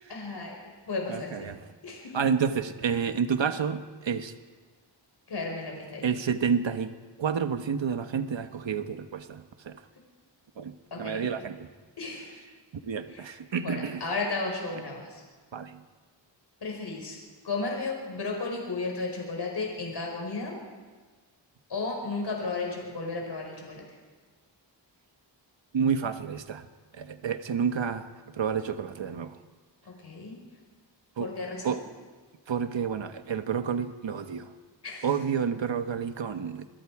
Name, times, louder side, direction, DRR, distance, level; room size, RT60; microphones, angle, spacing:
voice 1, 0.1-0.6 0.9-1.5 1.8-2.3 5.3-6.1 10.9-11.3 12.0-12.3 13.1-13.3 13.6-15.2 16.6-17.2 17.4-20.6 21.7-23.8 29.8-30.4 31.2-31.8 34.8-35.0, left 3 dB, 65° left, 0 dB, 5.0 m, -34 dB
voice 2, 1.1-1.6 2.1-4.3 6.0-6.9 7.2-9.8 10.6-11.7 12.8-14.0 15.5-15.8 25.7-26.7 26.9-28.1 28.3-29.4 31.2-31.3 31.6-31.8 32.5-34.5 35.0-36.7, right 7 dB, 80° right, 8 dB, 1.4 m, -29 dB
28.5 x 22.5 x 4.9 m, 1.4 s
wide cardioid pair, 150°, 45 cm